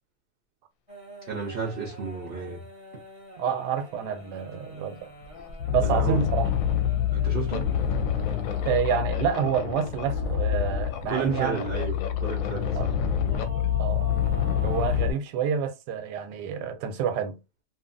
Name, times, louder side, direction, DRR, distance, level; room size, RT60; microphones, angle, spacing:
sound 1, 0.9-9.0 10.2-10.3 11.0-11.4 11.7-11.8 13.1-15.2, equal, 25° right, 0.8 m, -45 dB
voice 1, 1.3-2.6 5.8-6.2 7.1-7.7 11.1-12.9, right 5 dB, 55° right, 0.6 m, -32 dB
voice 2, 3.4-5.1 5.7-6.5 8.6-11.6 12.7-12.9 13.8-14.2 14.6-17.4, right 8 dB, 90° right, 1.2 m, -28 dB
sound 2, 4.7-4.8 5.2-15.1, left 9 dB, 70° left, 0.9 m, -27 dB
2.8 x 2.4 x 2.5 m
omnidirectional pair, 1.7 m